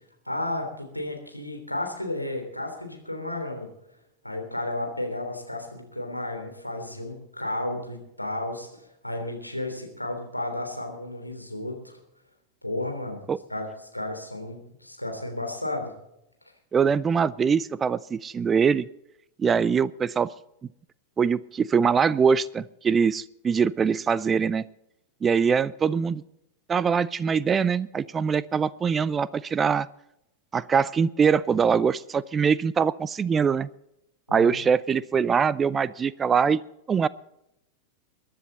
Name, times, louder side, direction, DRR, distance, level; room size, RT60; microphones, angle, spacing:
voice 1, 0.3-3.7 4.2-8.7 9.0-12.0 12.6-13.2 13.5-15.9 34.3-34.6, left 1 dB, 90° left, 3 dB, 3.4 m, -33 dB
voice 2, 16.7-18.9 19.4-20.3 21.2-24.6 25.2-26.2 26.7-29.9 30.5-33.7 34.3-36.6 36.9-37.1, right 6 dB, 20° right, 19 dB, 0.4 m, -23 dB
23.0 x 10.5 x 4.1 m, 0.83 s
figure-of-eight pair, 90°, 0 cm